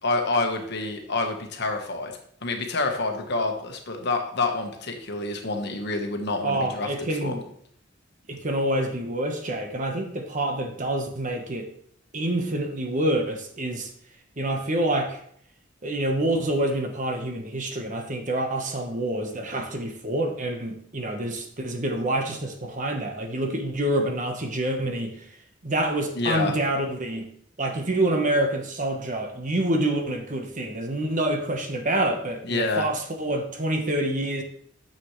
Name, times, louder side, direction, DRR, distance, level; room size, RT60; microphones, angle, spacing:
voice 1, 0.0-2.1 2.4-6.9 7.2-7.4 26.2-26.5 32.4-32.9, left 3 dB, 60° left, 4 dB, 1.3 m, -27 dB
voice 2, 6.4-7.4 8.3-11.7 12.1-13.9 14.4-15.2 15.8-25.3 25.6-27.3 27.6-34.4, right 1 dB, 40° right, 4 dB, 1.2 m, -27 dB
9.6 x 7.0 x 3.2 m, 0.65 s
head